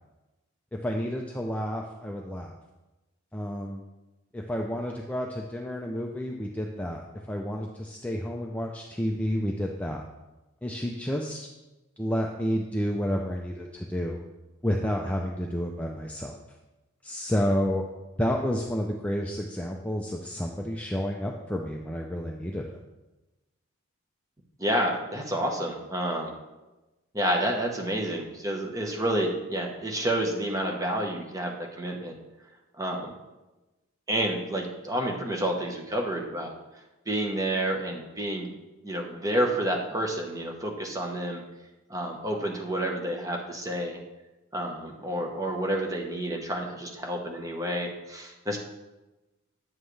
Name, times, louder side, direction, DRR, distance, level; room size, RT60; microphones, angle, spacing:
voice 1, 0.8-2.5 3.3-3.8 4.3-10.0 10.6-11.5 12.0-14.2 14.6-16.4 17.0-17.8 18.2-22.8, equal, 5° left, 0 dB, 0.4 m, -30 dB
voice 2, 24.6-26.3 27.1-32.1 32.8-33.1 34.1-36.5 37.1-38.5 38.8-41.4 41.9-44.0 44.5-48.6, right 1 dB, 15° right, 1 dB, 1.1 m, -29 dB
8.8 x 7.4 x 3.3 m, 1.1 s
head